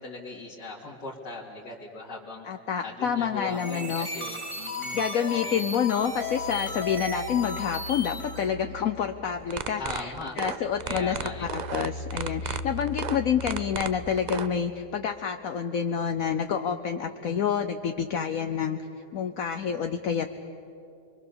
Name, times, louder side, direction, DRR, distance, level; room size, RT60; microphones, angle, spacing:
voice 1, 0.0-2.5 2.8-5.0 5.3-5.6 9.7-10.4 10.8-11.5, left 3 dB, 85° left, -6 dB, 3.0 m, -39 dB
voice 2, 2.4-4.1 4.9-11.2 11.4-18.8 19.1-20.3, left 7 dB, 65° left, 6 dB, 1.1 m, -28 dB
sound 1, 3.4-8.5, left 2 dB, 20° left, 2.0 m, -35 dB
sound 2, 5.9-9.8 10.2-14.7, left 2 dB, 60° right, 2.1 m, -40 dB
sound 3, 9.4-14.5, right 6 dB, 85° right, 0.3 m, -33 dB
28.5 x 23.0 x 6.9 m, 2.7 s
omnidirectional pair, 1.8 m